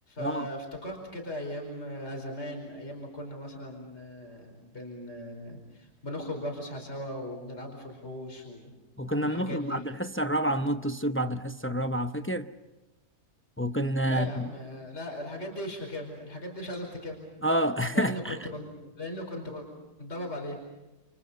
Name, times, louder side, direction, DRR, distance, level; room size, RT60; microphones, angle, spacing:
voice 1, 0.1-8.7 9.2-9.9 14.1-17.2 17.9-19.7 20.0-20.6, left 1 dB, 45° left, 5.2 m, -38 dB
voice 2, 9.0-12.5 13.6-14.5 17.4-18.4, equal, 20° left, 0.3 m, -28 dB
29.5 x 28.5 x 5.7 m
omnidirectional pair, 1.7 m